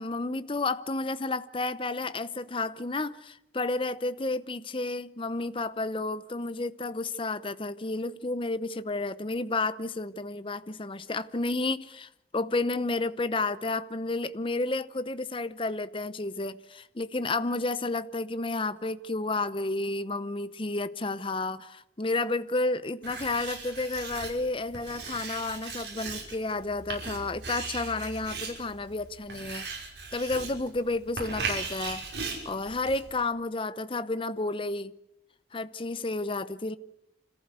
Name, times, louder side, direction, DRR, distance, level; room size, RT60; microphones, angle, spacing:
voice 1, 0.0-29.7 30.1-32.0 32.4-34.9 35.5-36.8, left 2 dB, 30° left, 0.8 m, -31 dB
Writing, 23.0-33.2, right 4 dB, 65° right, 5.7 m, -38 dB
26.0 x 15.0 x 8.3 m
head